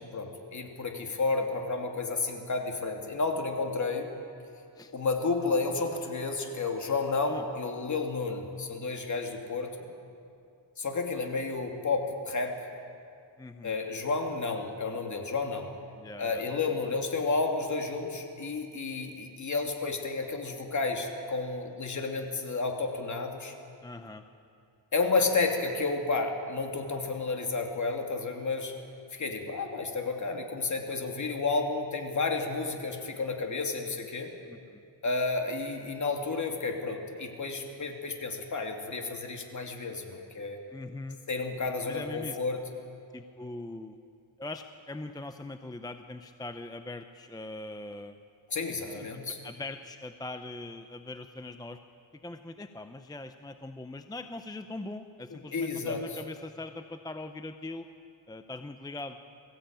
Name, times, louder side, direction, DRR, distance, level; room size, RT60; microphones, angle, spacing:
voice 1, 0.0-4.1 4.9-9.9 10.8-12.6 13.6-15.7 16.2-23.5 24.9-28.7 29.1-34.3 35.0-40.6 41.3-42.6 48.5-49.4 55.3-56.0, left 3 dB, 40° left, 3 dB, 2.9 m, -31 dB
voice 2, 13.4-13.7 16.0-16.7 23.8-24.2 34.5-34.8 40.7-41.2 41.8-42.4 43.1-44.0 44.4-48.2 48.8-51.8 52.2-57.9 58.3-59.2, left 2 dB, 10° left, 8 dB, 0.7 m, -41 dB
22.0 x 15.5 x 8.9 m, 2.5 s
cardioid pair, 100°, 45 cm